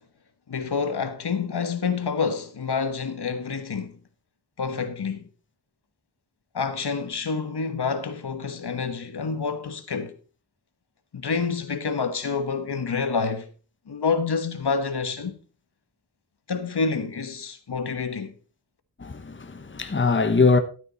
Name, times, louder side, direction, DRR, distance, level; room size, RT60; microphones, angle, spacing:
voice 1, 0.5-4.0 4.6-5.3 6.5-10.1 11.1-13.5 13.9-15.3 16.5-18.3, left 5 dB, 70° left, 1.3 m, -28 dB
voice 2, 19.0-20.6, left 4 dB, 30° left, 1.1 m, -22 dB
12.5 x 8.9 x 4.0 m
wide cardioid pair, 95°, 40 cm